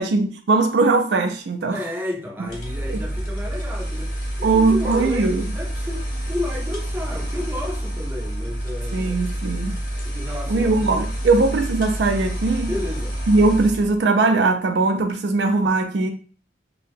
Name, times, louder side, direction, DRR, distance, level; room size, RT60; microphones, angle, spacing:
voice 1, 0.0-1.8 2.9-3.0 4.4-5.5 8.9-9.8 10.5-12.7 13.3-16.1, right 3 dB, 70° right, 0.4 m, -20 dB
voice 2, 1.7-9.3 10.0-11.4 12.6-13.2, left 1 dB, 10° right, 0.5 m, -32 dB
sound 1, 2.4-14.0, right 1 dB, 45° left, 0.7 m, -28 dB
2.7 x 2.1 x 3.4 m
head